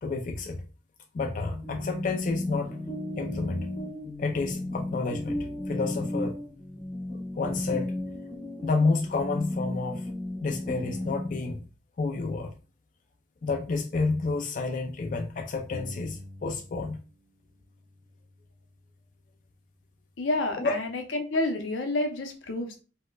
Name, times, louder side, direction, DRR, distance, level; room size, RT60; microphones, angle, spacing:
voice 1, 0.0-0.6 1.1-2.8 3.2-3.7 4.2-5.4 5.7-6.4 7.4-7.9 8.6-10.1 10.4-11.6 12.0-12.5 13.4-17.0 20.6-20.8, left 3 dB, 45° left, 0.3 m, -29 dB
sound 1, 1.5-11.4, left 1 dB, 15° left, 0.6 m, -34 dB
sound 2, 15.7-17.2 17.5-19.2, left 1 dB, 35° right, 0.7 m, -46 dB
voice 2, 20.2-22.8, left 2 dB, 90° left, 0.7 m, -29 dB
4.2 x 2.1 x 2.3 m
head